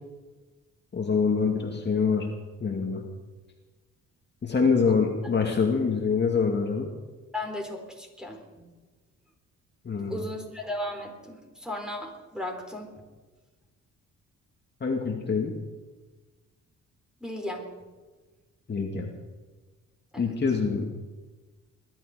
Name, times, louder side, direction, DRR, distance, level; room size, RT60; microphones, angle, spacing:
voice 1, 0.9-2.3 2.6-3.0 4.4-6.9 9.8-10.2 14.8-15.5 18.7-19.1 20.2-20.9, left 5 dB, 35° left, 0 dB, 2.3 m, -25 dB
voice 2, 7.3-8.7 10.1-12.9 17.2-17.7 20.1-20.3, left 1 dB, ahead, 2 dB, 4.2 m, -36 dB
21.5 x 12.0 x 5.1 m, 1.3 s
cardioid pair, 90°, 30 cm